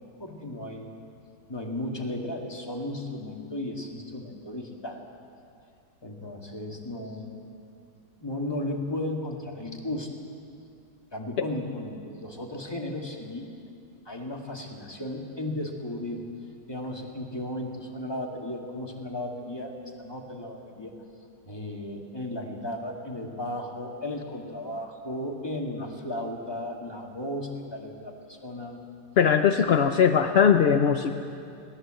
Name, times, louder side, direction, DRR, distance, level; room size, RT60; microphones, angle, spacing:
voice 1, 0.2-0.9 1.5-5.0 6.0-7.3 8.2-10.1 11.1-13.5 14.1-16.2 16.7-20.9 21.5-28.8 29.7-29.8, left 1 dB, 15° left, 0 dB, 2.2 m, -35 dB
voice 2, 29.2-31.1, left 7 dB, 60° left, 7 dB, 0.6 m, -20 dB
21.5 x 18.5 x 7.8 m, 2.5 s
omnidirectional pair, 1.9 m